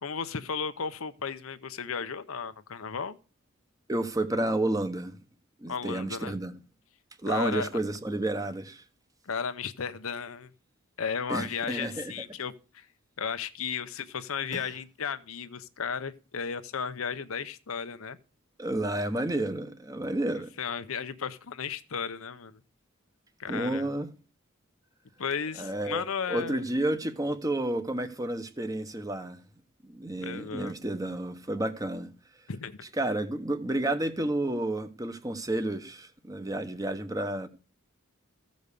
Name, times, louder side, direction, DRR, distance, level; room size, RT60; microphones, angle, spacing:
voice 1, 0.0-3.2 5.7-6.3 7.3-7.7 9.3-10.5 11.0-12.9 13.2-18.2 20.6-22.6 23.4-23.9 25.2-26.6 30.2-30.7 32.5-32.8, left 6 dB, 75° left, 0.7 m, -34 dB
voice 2, 3.9-5.2 5.6-6.5 7.2-8.8 11.3-12.1 14.5-14.7 18.6-20.5 23.5-24.1 25.6-29.4 29.8-32.1 33.0-37.5, right 1 dB, 15° right, 1.0 m, -31 dB
14.5 x 5.3 x 6.7 m
head